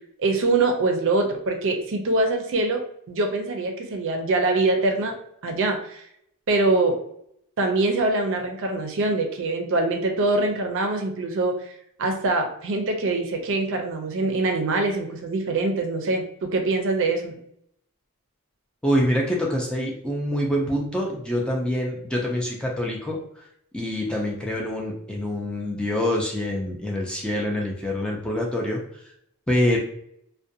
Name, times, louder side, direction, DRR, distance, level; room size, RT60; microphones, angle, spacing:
voice 1, 0.2-5.2 5.4-6.0 6.5-7.0 7.6-11.7 12.0-16.2 16.5-17.4, right 2 dB, 60° right, 4 dB, 0.5 m, -24 dB
voice 2, 18.8-23.4 23.7-28.8 29.5-29.8, left 1 dB, 5° left, -2 dB, 0.3 m, -25 dB
2.4 x 2.1 x 2.6 m, 0.70 s
head